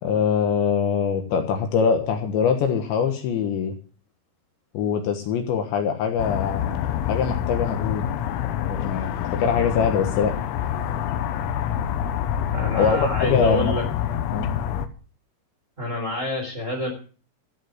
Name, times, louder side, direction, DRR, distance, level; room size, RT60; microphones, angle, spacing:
voice 1, 0.0-3.8 4.7-8.1 8.6-10.3 12.7-13.8 14.3-14.5, left 6 dB, 70° left, 5 dB, 3.4 m, -23 dB
sound 1, 6.2-14.9, left 9 dB, 85° left, 3.8 m, -27 dB
voice 2, 12.5-13.8 15.8-16.9, left 1 dB, 15° right, 1 dB, 3.5 m, -27 dB
14.0 x 7.5 x 8.0 m, 0.39 s
omnidirectional pair, 5.9 m